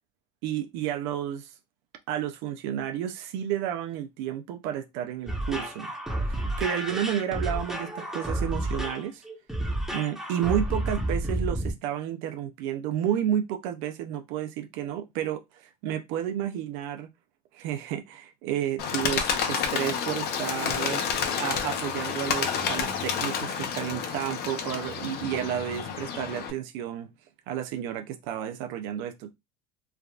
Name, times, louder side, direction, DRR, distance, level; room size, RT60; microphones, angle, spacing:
voice 1, 0.4-1.5 2.1-5.9 6.3-9.2 9.6-17.1 17.5-21.0 21.4-27.1 27.5-29.3, right 10 dB, 70° right, 0.5 m, -31 dB
sound 1, 5.3-11.7, right 1 dB, ahead, 1.0 m, -30 dB
Bird, 18.8-26.5, left 7 dB, 50° left, 0.7 m, -30 dB
3.4 x 2.3 x 2.3 m
supercardioid pair, 100°, 20 cm